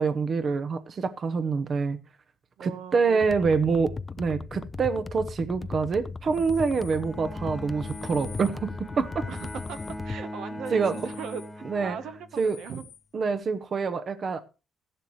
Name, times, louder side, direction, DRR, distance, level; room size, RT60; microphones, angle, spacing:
voice 1, 0.0-2.0 2.6-9.2 10.7-10.9 11.7-12.0 12.4-12.6 13.1-14.4, right 5 dB, 50° right, 0.8 m, -26 dB
voice 2, 2.6-4.0 9.3-12.8 13.4-13.6, right 6 dB, 80° right, 1.1 m, -40 dB
sound 1, 3.2-10.2, left 4 dB, 30° left, 0.5 m, -37 dB
sound 2, 6.3-7.1 7.8-8.6 9.3-10.1 10.8-11.6 12.3-13.1, left 9 dB, 70° left, 1.1 m, -49 dB
Bowed string instrument, 6.9-12.7, left 1 dB, 10° left, 1.3 m, -40 dB
14.0 x 11.0 x 3.2 m
cardioid pair, 90°, 0 cm